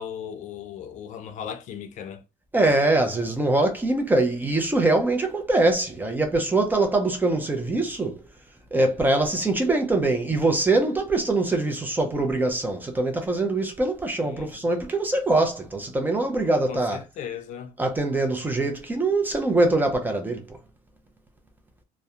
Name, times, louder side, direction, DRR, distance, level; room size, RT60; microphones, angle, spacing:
voice 1, 0.0-2.2 12.1-12.2 14.2-14.5 16.7-17.8, left 8 dB, 55° left, 0.4 m, -37 dB
voice 2, 2.5-8.2 8.7-17.0 17.8-20.6, right 2 dB, 10° right, 0.4 m, -23 dB
2.7 x 2.1 x 2.3 m
cardioid pair, 120°, 15 cm